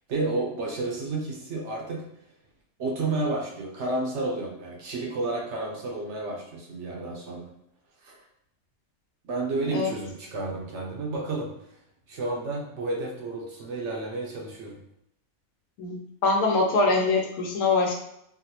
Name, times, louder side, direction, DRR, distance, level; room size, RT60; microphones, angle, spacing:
voice 1, 0.1-2.1 2.8-7.5 8.0-8.2 9.2-11.7 12.1-14.8, right 2 dB, 60° right, -1 dB, 0.9 m, -31 dB
voice 2, 15.8-17.9, left 3 dB, 90° left, 1 dB, 1.1 m, -23 dB
3.8 x 2.0 x 2.8 m, 0.76 s
omnidirectional pair, 1.5 m